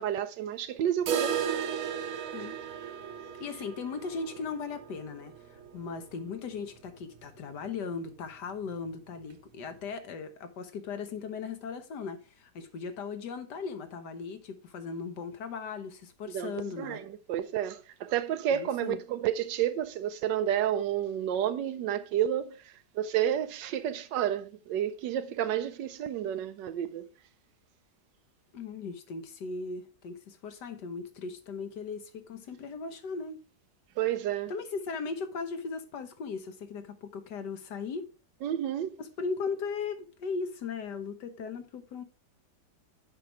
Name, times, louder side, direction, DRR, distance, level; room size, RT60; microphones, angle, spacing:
voice 1, 0.0-1.4 16.3-27.1 34.0-34.5 38.4-39.0, right 10 dB, 85° right, 1.2 m, -30 dB
sound 1, 1.1-6.9 7.2-7.3 7.6-7.7 8.2-8.3 9.2-9.3, right 8 dB, 60° right, 1.1 m, -35 dB
voice 2, 3.4-17.0 18.5-19.0 28.5-33.4 34.5-38.1 39.0-42.0, left 5 dB, 70° left, 1.7 m, -38 dB
7.5 x 5.5 x 4.6 m
omnidirectional pair, 1.9 m